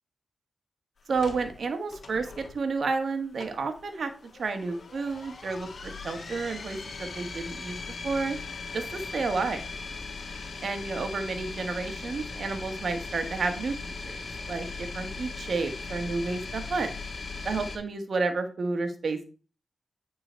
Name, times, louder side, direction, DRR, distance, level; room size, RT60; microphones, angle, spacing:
sound 1, 1.1-17.8, left 4 dB, 65° left, 1.3 m, -39 dB
voice 1, 1.1-4.1 4.4-7.8 8.0-8.4 8.7-9.6 10.6-14.2 14.5-16.9 17.4-19.2, right 4 dB, 70° right, 7 dB, 1.3 m, -31 dB
9.2 x 3.9 x 4.4 m, 0.36 s
cardioid pair, 55°, 0 cm